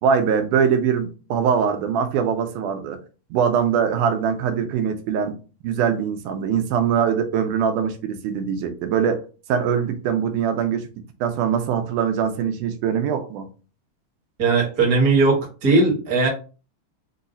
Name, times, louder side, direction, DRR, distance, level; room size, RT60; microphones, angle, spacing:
voice 1, 0.0-3.0 3.3-5.4 5.6-9.2 9.5-13.5, right 7 dB, 90° right, 2.2 m, -22 dB
voice 2, 14.4-16.3, right 3 dB, 40° right, 1.4 m, -18 dB
5.3 x 2.3 x 3.9 m
omnidirectional pair, 3.5 m